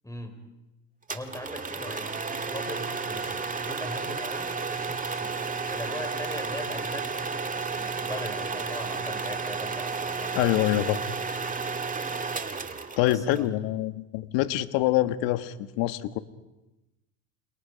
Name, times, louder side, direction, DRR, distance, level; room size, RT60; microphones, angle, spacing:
voice 1, 0.0-0.4 1.1-10.6 13.0-13.5, left 1 dB, 5° left, 5 dB, 5.6 m, -40 dB
sound 1, 1.1-13.4, right 4 dB, 15° right, 2.0 m, -32 dB
voice 2, 10.3-11.0 13.0-16.2, left 14 dB, 65° left, 11 dB, 1.6 m, -25 dB
29.0 x 28.5 x 5.2 m, 0.98 s
supercardioid pair, 95°, 47 cm